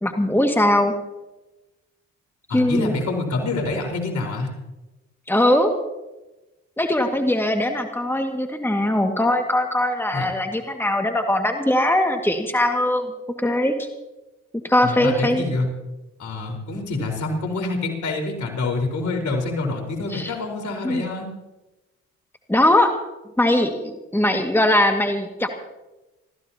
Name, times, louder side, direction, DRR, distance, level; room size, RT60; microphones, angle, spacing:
voice 1, 0.0-0.9 2.5-3.0 5.3-5.7 6.8-13.1 13.4-13.9 14.6-15.5 20.1-20.3 20.8-21.0 22.5-22.9 23.4-25.5, left 1 dB, 5° left, 4 dB, 2.0 m, -20 dB
voice 2, 2.5-4.5 10.1-10.2 14.8-15.7 16.2-21.3, left 3 dB, 60° left, 2 dB, 4.6 m, -26 dB
28.0 x 15.0 x 2.9 m, 1.0 s
supercardioid pair, 55°, 32 cm